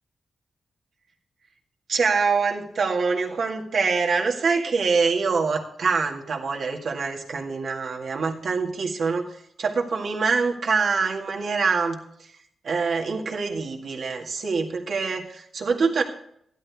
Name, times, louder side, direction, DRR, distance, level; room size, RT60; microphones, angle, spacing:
voice 1, 1.9-12.4 12.6-16.0, right 4 dB, 70° right, 1 dB, 2.0 m, -25 dB
13.5 x 11.5 x 3.6 m, 0.69 s
cardioid pair, 95°, 0 cm